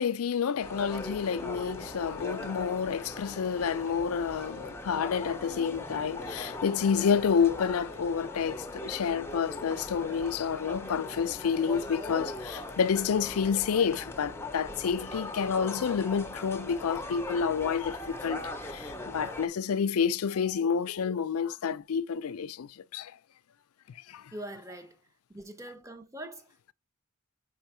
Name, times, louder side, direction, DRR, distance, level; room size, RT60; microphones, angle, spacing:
voice 1, 0.0-23.1 24.1-24.3, left 6 dB, 80° left, 0.4 m, -29 dB
sound 1, 0.6-19.5, left 2 dB, 10° left, 0.7 m, -40 dB
voice 2, 24.3-25.0 25.3-26.7, right 1 dB, 15° right, 0.9 m, -43 dB
4.7 x 4.5 x 4.4 m
head